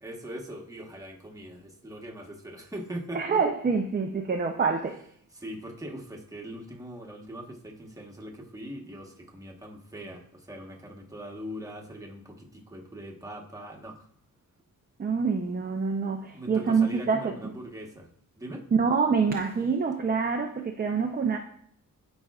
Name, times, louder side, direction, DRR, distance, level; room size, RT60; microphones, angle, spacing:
voice 1, 0.0-3.4 5.3-14.1 16.3-18.1 18.3-18.6, equal, 10° right, 1.2 m, -41 dB
voice 2, 3.1-5.0 15.0-17.4 18.7-21.4, right 5 dB, 30° right, 0.6 m, -26 dB
13.0 x 5.3 x 2.4 m
wide cardioid pair, 145°, 34 cm